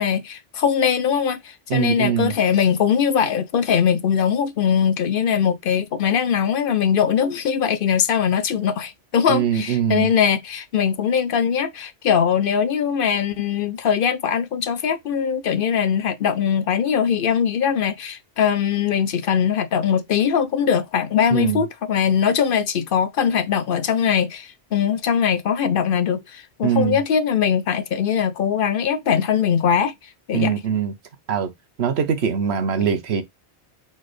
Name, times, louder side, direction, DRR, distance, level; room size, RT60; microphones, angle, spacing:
voice 1, 0.0-29.9 30.3-30.5, left 7 dB, 60° left, 0.7 m, -21 dB
voice 2, 1.7-2.3 9.3-10.1 21.3-21.6 26.6-27.0 30.3-30.9 31.3-31.5 31.8-33.2, right 8 dB, 75° right, 1.1 m, -22 dB
4.1 x 3.9 x 3.2 m
omnidirectional pair, 1.1 m